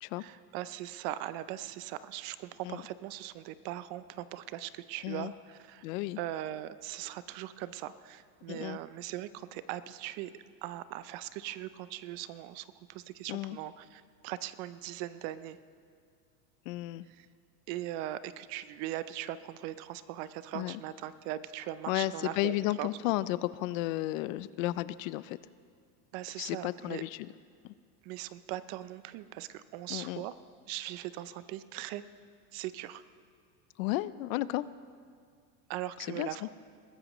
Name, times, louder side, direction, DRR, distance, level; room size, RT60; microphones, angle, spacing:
voice 1, 0.2-5.8 6.2-10.3 10.6-15.6 17.1-17.3 17.7-22.9 26.1-27.0 28.0-30.4 30.7-32.0 32.5-33.0 35.7-36.5, right 13 dB, 45° right, 15 dB, 0.5 m, -40 dB
voice 2, 5.8-6.2 8.5-8.8 13.3-13.6 16.7-17.0 20.5-20.8 21.9-25.4 26.4-27.3 27.6-27.7 29.9-30.2 33.8-34.7 36.1-36.5, left 17 dB, 60° left, 17 dB, 0.5 m, -33 dB
21.5 x 14.5 x 3.0 m, 2.1 s
supercardioid pair, 140°, 46 cm